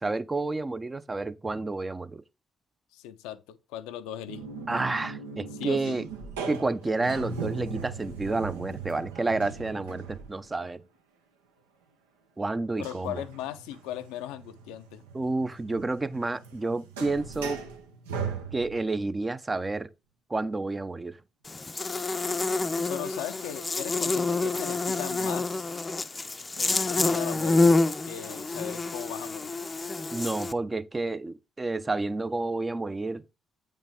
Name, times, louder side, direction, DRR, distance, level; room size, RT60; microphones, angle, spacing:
voice 1, 0.0-2.2 4.7-6.1 6.5-10.8 12.4-13.2 15.1-17.6 18.5-19.9 20.3-21.2 30.1-33.2, right 3 dB, 25° right, 0.6 m, -30 dB
voice 2, 2.9-4.5 5.5-6.0 12.8-15.0 22.9-25.7 26.6-27.8 28.1-29.5, left 12 dB, 65° left, 0.5 m, -38 dB
sound 1, 4.3-10.6 12.8-19.0, right 5 dB, 75° right, 0.9 m, -39 dB
Buzz, 21.5-30.5, left 3 dB, 25° left, 0.6 m, -27 dB
8.7 x 5.2 x 3.6 m
figure-of-eight pair, 40°, 0 cm